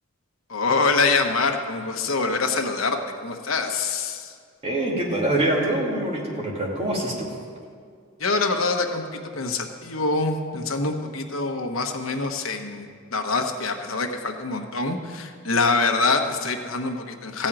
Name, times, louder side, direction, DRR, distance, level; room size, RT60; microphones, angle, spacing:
voice 1, 0.5-4.3 8.2-17.5, left 3 dB, 80° left, 4 dB, 1.1 m, -25 dB
voice 2, 4.6-7.3, right 1 dB, 30° right, -3 dB, 2.3 m, -24 dB
15.0 x 5.5 x 8.9 m, 2.1 s
head